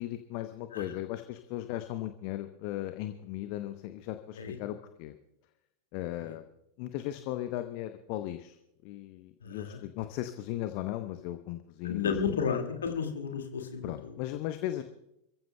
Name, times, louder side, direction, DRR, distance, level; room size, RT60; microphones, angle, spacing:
voice 1, 0.0-5.1 5.9-6.4 6.8-8.6 8.8-12.2 13.8-14.8, left 14 dB, 45° left, 9 dB, 0.8 m, -37 dB
voice 2, 9.4-9.8 11.8-14.1, left 6 dB, 65° left, 5 dB, 2.0 m, -32 dB
28.0 x 15.0 x 2.2 m, 0.83 s
figure-of-eight pair, 90°, 0 cm